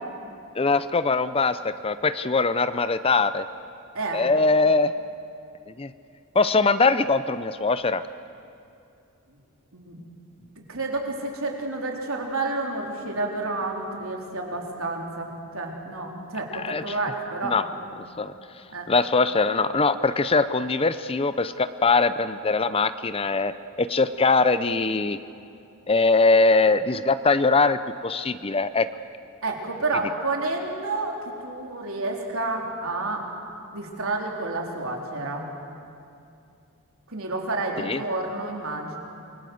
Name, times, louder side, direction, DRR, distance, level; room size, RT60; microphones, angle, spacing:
voice 1, 0.6-3.5 4.1-4.9 5.8-5.9 6.3-8.0 16.5-16.9 17.4-17.6 18.2-18.3 18.9-25.2 25.9-28.9 37.8-38.0, left 3 dB, 25° left, 13 dB, 0.6 m, -22 dB
voice 2, 10.6-17.9 18.7-18.9 29.4-33.3 33.7-35.5 37.1-39.0, right 2 dB, 70° right, 1 dB, 3.8 m, -30 dB
27.0 x 22.5 x 7.9 m, 2.5 s
head